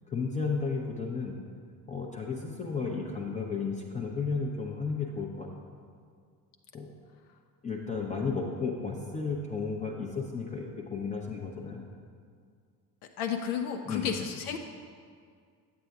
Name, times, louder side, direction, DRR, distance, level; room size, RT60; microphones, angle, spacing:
voice 1, 0.1-1.4 1.9-5.5 6.7-6.9 7.6-11.8 13.9-14.1, left 4 dB, 15° left, -1 dB, 0.6 m, -33 dB
voice 2, 13.2-14.6, left 7 dB, 65° left, 5 dB, 0.5 m, -32 dB
8.2 x 7.6 x 2.3 m, 2.1 s
figure-of-eight pair, 60°, 49 cm